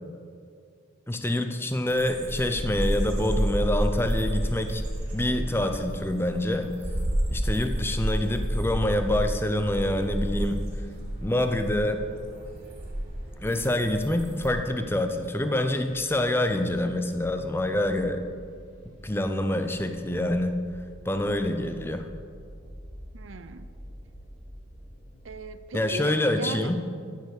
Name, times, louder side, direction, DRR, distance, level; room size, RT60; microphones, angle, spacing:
voice 1, 1.1-4.8 5.1-6.7 7.3-10.6 11.2-12.1 13.4-18.2 19.0-20.6 21.1-22.0 25.7-26.8, left 1 dB, 10° left, 7 dB, 0.6 m, -26 dB
sound 1, 1.9-14.5, equal, 35° right, 3.5 m, -30 dB
sound 2, 9.3-25.4, equal, 35° left, 3.3 m, -48 dB
voice 2, 23.1-23.7 25.2-26.7, right 4 dB, 80° right, 11 dB, 0.6 m, -39 dB
15.0 x 6.6 x 6.6 m, 2.2 s
head